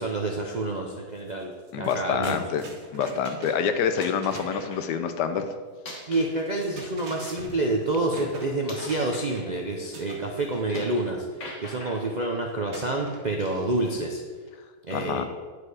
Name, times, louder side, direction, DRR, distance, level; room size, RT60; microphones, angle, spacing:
voice 1, 0.0-2.4 6.1-14.2 14.9-15.2, right 2 dB, 60° right, 0 dB, 0.4 m, -28 dB
sound 1, 1.2-1.3 1.6-4.7 6.4-9.6 9.9-11.0 12.7-13.6, right 2 dB, 75° right, 1.9 m, -43 dB
voice 2, 1.7-2.6 2.9-5.6 14.9-15.3, left 7 dB, 80° left, 9 dB, 1.3 m, -27 dB
sound 2, 4.0-5.0 5.7-7.7 8.1-11.1 11.4-12.3 13.4-13.9, left 1 dB, 45° left, 1.7 m, -44 dB
10.0 x 4.9 x 4.8 m, 1.5 s
omnidirectional pair, 1.8 m